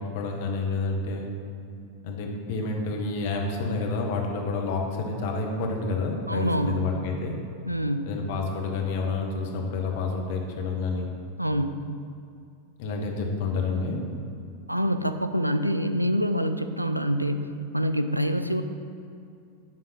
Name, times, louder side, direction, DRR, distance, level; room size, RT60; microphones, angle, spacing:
voice 1, 0.1-1.3 2.0-7.4 8.1-11.1 12.8-14.0, left 3 dB, 50° left, 1 dB, 0.9 m, -29 dB
voice 2, 6.3-6.9 7.7-8.2 11.4-11.9 14.7-18.6, equal, 90° right, 9 dB, 0.3 m, -26 dB
9.9 x 3.8 x 4.1 m, 2.4 s
figure-of-eight pair, 90°, 0 cm